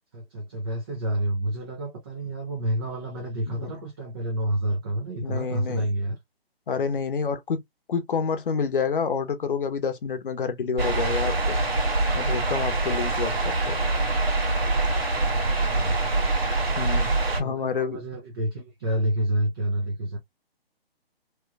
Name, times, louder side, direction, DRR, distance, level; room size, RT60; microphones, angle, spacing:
voice 1, 0.1-6.2 15.3-16.0 17.0-20.2, right 1 dB, 25° right, 0.6 m, -29 dB
voice 2, 3.5-3.9 5.2-5.9 6.7-7.6 7.9-11.6 12.1-13.8 16.8-17.1 17.4-18.0, left 5 dB, 60° left, 0.8 m, -28 dB
sound 1, 10.8-17.4, right 2 dB, 75° right, 2.1 m, -24 dB
3.1 x 3.1 x 2.3 m
figure-of-eight pair, 150°, 31 cm